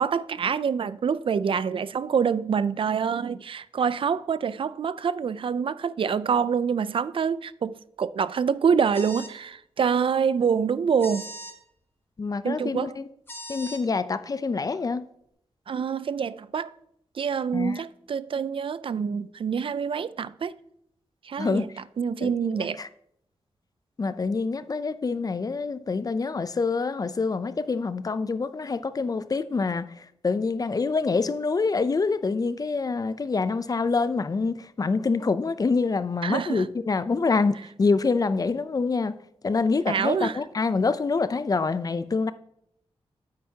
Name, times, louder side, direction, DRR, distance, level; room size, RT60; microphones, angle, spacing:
voice 1, 0.0-11.3 12.4-12.9 15.7-16.7 17.2-20.5 21.2-21.7 22.0-22.8 36.2-36.6 39.9-40.4, right 6 dB, 55° right, 0.4 m, -26 dB
sound 1, 8.9-9.4 11.0-11.6 13.3-13.8, equal, 20° left, 1.6 m, -39 dB
voice 2, 12.2-13.1 13.5-15.1 17.5-17.8 21.4-21.7 22.2-22.9 24.0-39.2 39.4-42.3, left 4 dB, 35° left, 0.4 m, -26 dB
9.1 x 8.7 x 2.8 m
wide cardioid pair, 85°, 10 cm